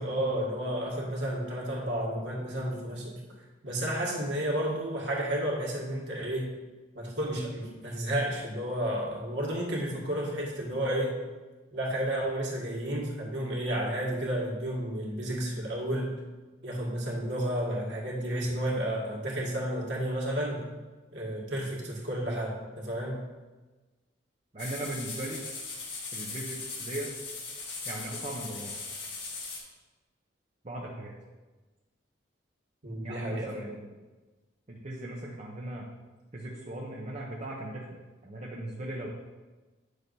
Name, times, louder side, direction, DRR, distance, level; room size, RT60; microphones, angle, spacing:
voice 1, 0.0-3.1 3.6-6.5 7.0-11.2 11.7-16.2 16.6-20.7 21.1-23.2 32.8-33.7, right 1 dB, 65° right, -3 dB, 1.8 m, -31 dB
voice 2, 24.5-25.4 26.1-27.1 27.9-28.7 30.6-31.1 33.0-33.9 34.7-35.8 36.3-39.1, right 1 dB, 35° right, -2 dB, 0.8 m, -38 dB
sound 1, 24.6-29.6, left 3 dB, 70° left, 1.5 m, -39 dB
8.8 x 6.4 x 2.7 m, 1.2 s
head